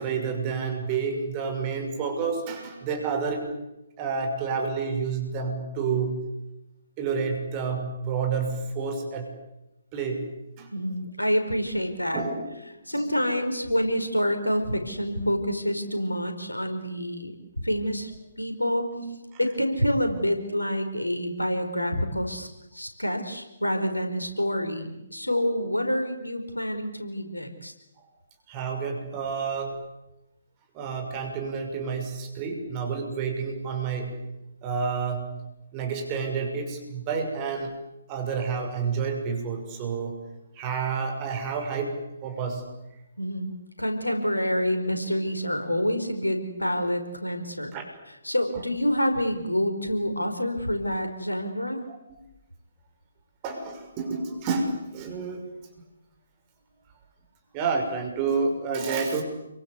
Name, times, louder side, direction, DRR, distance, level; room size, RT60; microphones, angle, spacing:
voice 1, 0.0-3.6 4.0-6.3 7.0-9.4 9.9-10.7 12.1-12.5 12.9-13.1 18.9-19.4 28.0-28.1 28.5-29.9 30.7-37.8 38.1-40.2 40.5-42.6 47.7-47.8 53.4-55.4 57.5-59.2, right 5 dB, 25° right, 3 dB, 6.1 m, -29 dB
voice 2, 10.7-12.2 12.9-18.1 18.4-18.8 19.4-22.5 22.7-27.7 43.2-47.7 48.2-51.8, equal, 85° left, 6 dB, 4.9 m, -27 dB
28.5 x 24.0 x 8.4 m, 0.93 s
figure-of-eight pair, 135°, 0 cm